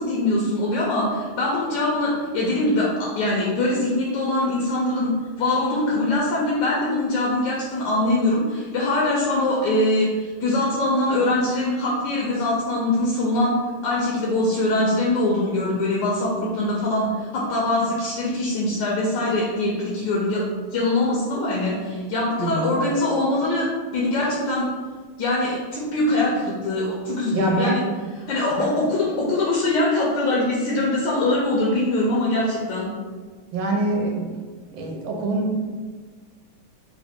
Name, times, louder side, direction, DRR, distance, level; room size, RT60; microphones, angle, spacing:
voice 1, 0.0-5.1 5.4-13.6 13.8-20.4 20.7-23.7 23.9-24.7 25.2-27.8 28.3-32.9, left 2 dB, 70° left, -4 dB, 1.2 m, -23 dB
voice 2, 22.4-22.7 27.3-27.8 28.5-28.8 33.5-34.3 34.7-35.6, right 2 dB, 75° right, 1 dB, 1.3 m, -25 dB
3.6 x 2.5 x 3.6 m, 1.4 s
omnidirectional pair, 2.3 m